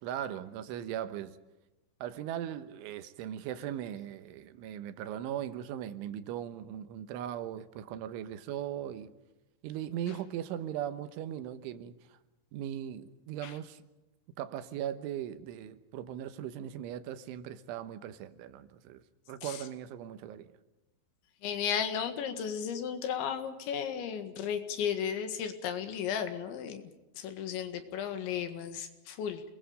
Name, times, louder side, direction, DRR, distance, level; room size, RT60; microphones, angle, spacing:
voice 1, 0.0-1.4 2.0-9.1 9.6-12.0 12.5-13.8 14.4-20.5, right 10 dB, 90° right, 3.6 m, -39 dB
voice 2, 21.4-26.8 27.2-29.4, left 8 dB, 75° left, 4.1 m, -34 dB
28.5 x 21.5 x 5.2 m
omnidirectional pair, 5.4 m